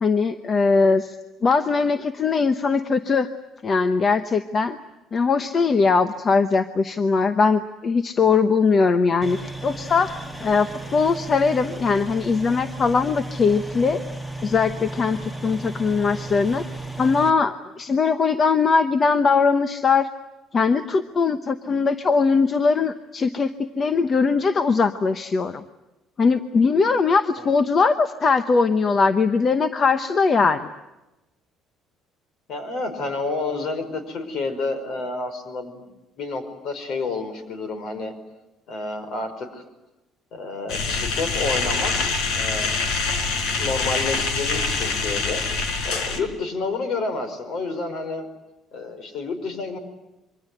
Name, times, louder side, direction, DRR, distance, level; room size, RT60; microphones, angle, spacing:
voice 1, 0.0-1.2 1.4-3.3 3.6-4.8 5.1-14.0 14.4-16.6 17.0-20.1 20.5-25.6 26.2-30.7, left 4 dB, 25° left, 10 dB, 0.9 m, -20 dB
sound 1, 9.2-17.3, right 2 dB, 5° left, 1.3 m, -34 dB
voice 2, 32.5-35.8 36.2-38.1 38.7-39.6 40.3-42.8 43.6-45.4 45.8-48.3 48.7-49.8, left 3 dB, 50° left, 10 dB, 5.1 m, -29 dB
sound 2, 40.7-46.2, left 4 dB, 70° left, 4.6 m, -25 dB
26.0 x 24.5 x 9.3 m, 0.98 s
cardioid pair, 170°, 0 cm